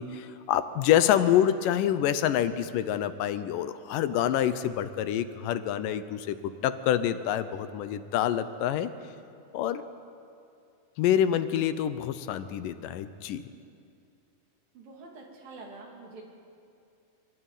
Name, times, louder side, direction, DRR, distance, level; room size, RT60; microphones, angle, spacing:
voice 1, 0.0-8.9 9.5-9.8 11.0-13.4, left 10 dB, 80° left, 12 dB, 2.4 m, -27 dB
voice 2, 14.7-16.2, right 3 dB, 85° right, -1 dB, 4.8 m, -46 dB
24.5 x 12.5 x 9.1 m, 2.5 s
omnidirectional pair, 3.9 m